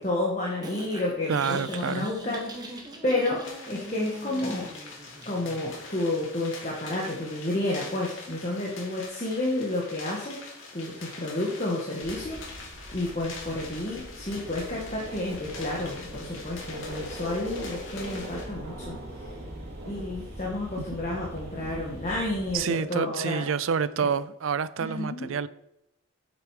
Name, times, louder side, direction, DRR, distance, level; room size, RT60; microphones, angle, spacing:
voice 1, 0.0-4.7 5.2-10.4 10.7-12.4 12.9-19.0 19.9-23.4 24.0-24.1 24.8-25.4, left 2 dB, 35° left, 1.6 m, -31 dB
sound 1, 0.6-5.6, right 1 dB, 20° right, 1.2 m, -41 dB
voice 2, 1.3-2.1 22.5-25.5, right 6 dB, 75° right, 0.4 m, -28 dB
sound 2, 3.4-18.4, left 3 dB, 70° left, 2.5 m, -44 dB
sound 3, 12.0-22.6, right 1 dB, 50° right, 2.9 m, -41 dB
8.9 x 6.9 x 4.9 m
head